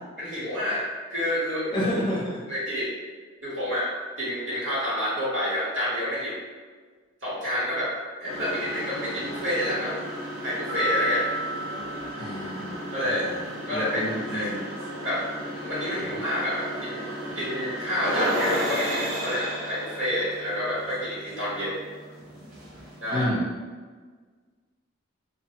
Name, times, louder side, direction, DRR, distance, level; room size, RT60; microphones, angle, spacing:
voice 1, 0.2-1.7 2.5-2.9 3.4-3.9 4.2-6.4 7.2-7.9 8.2-9.9 10.4-11.3 12.9-13.2 13.7-14.5 15.0-15.2 15.5-17.1 17.3-21.8 23.0-23.3, left 1 dB, 65° right, -9 dB, 1.2 m, -28 dB
voice 2, 1.7-2.4 12.2-14.6 16.0-16.1 23.1-23.5, equal, 25° left, -6 dB, 0.7 m, -30 dB
sound 1, 8.2-23.2, equal, 85° right, 0.7 m, -34 dB
sound 2, 10.7-13.2, right 2 dB, 15° right, 0.4 m, -33 dB
2.9 x 2.2 x 2.8 m, 1.5 s
head